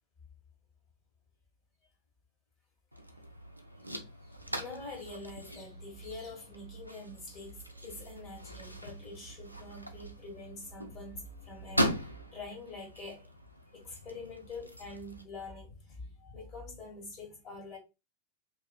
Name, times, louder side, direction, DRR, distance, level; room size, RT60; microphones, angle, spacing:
sound 1, 2.9-15.2, equal, 90° right, 0.3 m, -40 dB
voice 1, 4.2-13.4 13.7-17.8, left 3 dB, 35° left, 1.4 m, -45 dB
sound 2, 4.4-12.3, right 6 dB, 10° right, 0.4 m, -55 dB
2.6 x 2.4 x 2.3 m
figure-of-eight pair, 90°, 0 cm